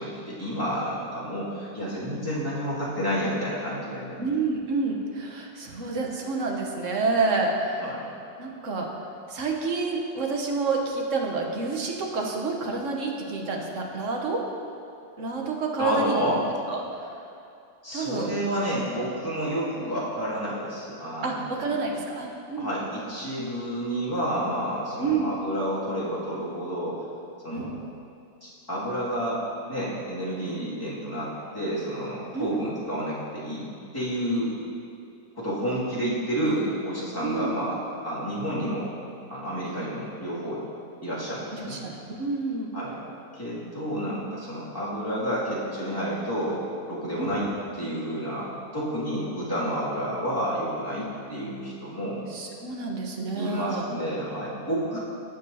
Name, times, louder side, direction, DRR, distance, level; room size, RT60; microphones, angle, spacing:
voice 1, 0.0-4.2 7.8-8.1 15.8-16.4 17.8-21.7 22.6-27.0 27.4-27.8 28.4-29.4 29.7-33.7 33.9-34.5 35.3-37.7 38.0-38.9 39.3-40.6 41.0-41.8 42.7-43.0 43.3-47.5 47.8-51.0 51.3-52.2 53.4-55.0, equal, 10° left, -10 dB, 2.3 m, -30 dB
voice 2, 4.2-7.9 8.4-8.9 9.3-14.4 15.2-16.3 16.7-17.1 17.9-18.3 21.2-22.7 25.0-25.3 27.5-27.7 32.3-32.7 37.2-37.5 41.5-42.7 43.9-44.2 47.2-47.4 51.0-51.1 52.3-53.8 54.9-55.0, right 3 dB, 55° right, 1 dB, 1.2 m, -29 dB
17.0 x 6.6 x 2.8 m, 2.5 s
omnidirectional pair, 1.8 m